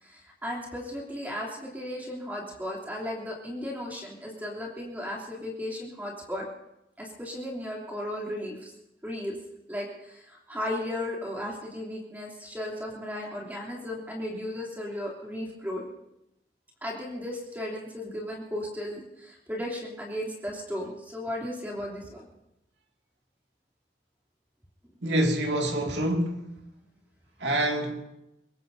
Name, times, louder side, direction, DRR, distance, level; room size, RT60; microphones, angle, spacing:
voice 1, 0.0-6.5 7.0-8.7 9.0-9.3 9.7-15.8 16.8-22.3, left 1 dB, 10° right, 3.0 m, -35 dB
voice 2, 25.0-26.6 27.4-28.0, right 1 dB, 85° right, 2.2 m, -26 dB
24.0 x 21.0 x 2.7 m
head